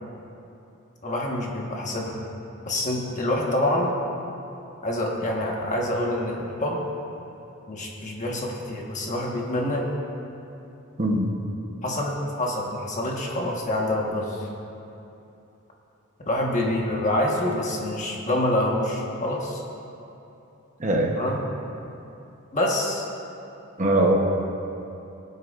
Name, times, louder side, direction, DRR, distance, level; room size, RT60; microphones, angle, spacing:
voice 1, 1.0-2.2 2.7-4.0 4.8-6.8 7.7-9.8 11.8-14.5 16.3-19.6 21.2-21.4 22.5-23.0, left 1 dB, 35° left, -2 dB, 1.4 m, -26 dB
voice 2, 20.8-21.1 23.8-24.1, right 1 dB, 35° right, 0 dB, 1.0 m, -21 dB
21.0 x 8.2 x 2.5 m, 2.8 s
head